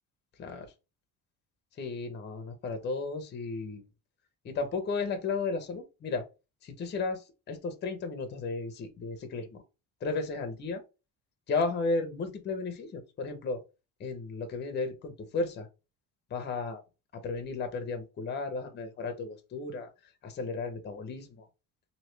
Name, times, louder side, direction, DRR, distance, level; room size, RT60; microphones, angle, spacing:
voice 1, 1.8-3.8 4.4-6.3 6.6-7.2 7.5-9.6 10.0-10.8 11.5-13.6 14.0-15.7 16.3-16.8 17.1-19.9 20.2-21.5, left 3 dB, 30° left, 7 dB, 0.6 m, -34 dB
3.1 x 2.7 x 3.1 m, 0.29 s
cardioid pair, 160°, 36 cm